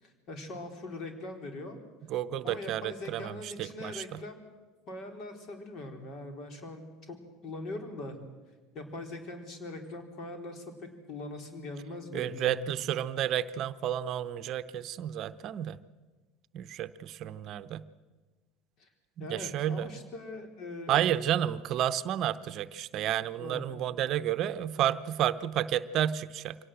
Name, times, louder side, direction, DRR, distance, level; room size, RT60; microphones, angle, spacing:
voice 1, 0.0-1.8 2.4-4.4 4.9-7.2 7.4-8.2 8.7-12.7 18.8-18.9 19.2-21.0 23.4-23.7, left 2 dB, 50° left, 5 dB, 4.2 m, -41 dB
voice 2, 2.1-4.2 12.1-15.8 16.5-17.8 19.2-19.9 20.9-26.6, right 11 dB, 50° right, 13 dB, 0.8 m, -31 dB
24.5 x 18.0 x 7.8 m, 1.3 s
hypercardioid pair, 75°, 0 cm